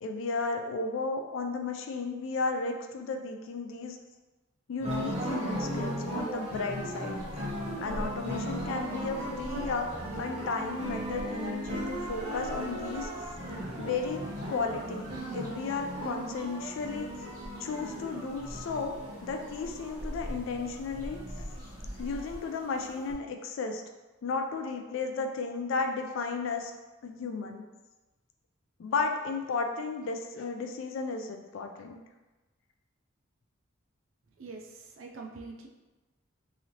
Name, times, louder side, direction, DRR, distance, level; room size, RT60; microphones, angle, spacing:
voice 1, 0.0-4.0 4.7-7.2 7.8-9.9 10.2-13.1 13.8-19.0 19.2-21.5 22.0-23.8 24.2-26.7 27.0-27.7 28.8-32.0, left 4 dB, 65° left, 4 dB, 0.3 m, -34 dB
sound 1, 4.8-23.1, right 1 dB, 30° right, 0.9 m, -37 dB
sound 2, 7.1-22.4, equal, 40° left, 1.3 m, -45 dB
voice 2, 34.4-35.7, right 3 dB, 70° right, 1 dB, 0.4 m, -44 dB
3.0 x 2.7 x 2.8 m, 1.1 s
head